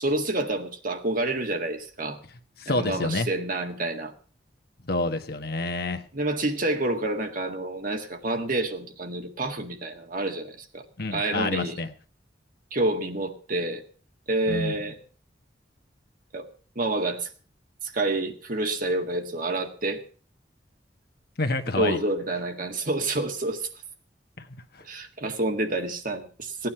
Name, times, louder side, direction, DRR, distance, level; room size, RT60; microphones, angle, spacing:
voice 1, 0.0-2.2 2.7-4.1 6.1-10.8 11.1-11.8 12.7-13.8 14.3-15.0 16.3-16.5 16.8-17.3 17.8-20.0 21.8-23.7 24.9-26.7, right 2 dB, 50° right, 5 dB, 1.8 m, -28 dB
voice 2, 2.6-3.3 4.8-6.0 11.0-11.9 14.5-14.8 21.4-22.0 24.7-24.8, left 2 dB, 60° left, 7 dB, 1.4 m, -28 dB
16.5 x 9.5 x 5.7 m, 0.41 s
head